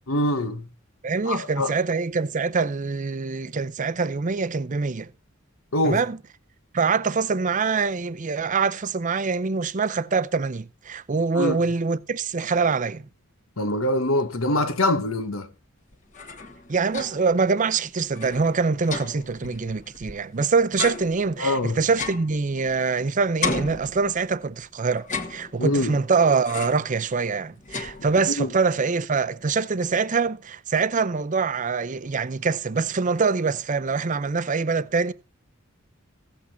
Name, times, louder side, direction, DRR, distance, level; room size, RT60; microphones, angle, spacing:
voice 1, 0.1-0.7 1.3-1.7 5.7-6.0 11.3-11.6 13.6-15.5 21.4-21.8 25.6-26.0 28.4-28.5, left 1 dB, 85° left, 1.3 m, -24 dB
voice 2, 1.0-5.1 5.8-6.2 6.7-13.1 16.7-35.1, right 4 dB, 40° right, 0.6 m, -24 dB
sound 1, 15.9-17.4 17.7-17.8 18.1-20.3 20.8-23.0 23.4-24.5 25.0-25.9 26.4-27.0 27.3-28.5, left 4 dB, 40° left, 1.4 m, -34 dB
15.5 x 8.3 x 4.2 m
head